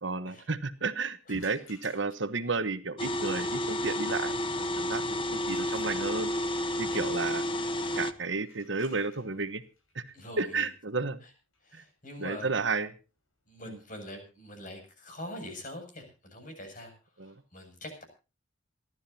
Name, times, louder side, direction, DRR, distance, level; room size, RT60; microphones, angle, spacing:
voice 1, 0.0-6.3 6.8-7.4 7.9-9.6 9.9-10.0 10.4-11.2 11.7-11.8 12.2-12.9 13.7-13.8 17.2-17.3, right 4 dB, 65° right, 11 dB, 1.2 m, -32 dB
sound 1, 1.3-2.4 5.4-6.5 8.3-14.0, left 4 dB, 90° left, 6.6 m, -58 dB
sound 2, 3.0-8.1, left 1 dB, 25° left, 0.8 m, -31 dB
voice 2, 5.0-5.6 6.8-7.1 10.1-10.7 11.2-11.3 11.6-12.5 13.5-16.9 17.2-18.0, left 1 dB, 40° left, 5 dB, 7.5 m, -44 dB
28.0 x 12.5 x 2.8 m, 0.33 s
head